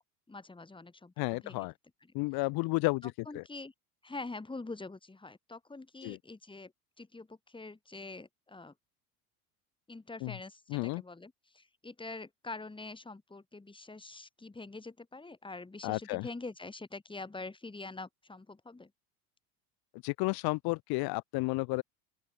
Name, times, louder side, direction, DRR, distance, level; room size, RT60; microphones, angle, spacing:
voice 1, 0.3-1.7 3.0-3.7 4.0-6.7 7.0-8.7 9.9-18.9, left 3 dB, 10° left, 3.7 m, -45 dB
voice 2, 1.2-1.7 2.1-3.4 6.0-6.2 10.2-10.3 10.7-11.0 15.8-16.3 20.0-21.8, left 25 dB, 55° left, 1.2 m, -32 dB
open air
hypercardioid pair, 80°, 44 cm